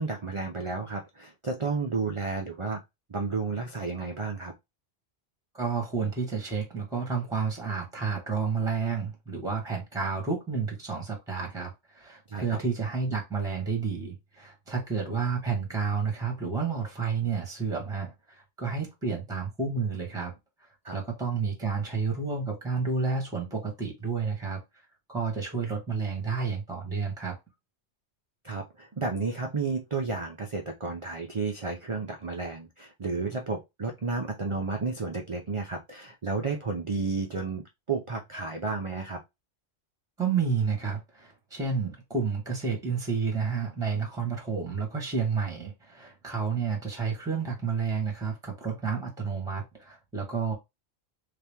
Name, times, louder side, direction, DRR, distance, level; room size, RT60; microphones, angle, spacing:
voice 1, 0.0-2.8 3.1-4.5 12.3-12.6 20.8-21.0 28.4-39.2, right 4 dB, 40° right, 0.5 m, -32 dB
voice 2, 5.5-20.3 20.9-24.6 25.1-27.4 40.2-50.5, right 5 dB, 5° right, 1.2 m, -30 dB
3.3 x 2.9 x 3.4 m
omnidirectional pair, 1.1 m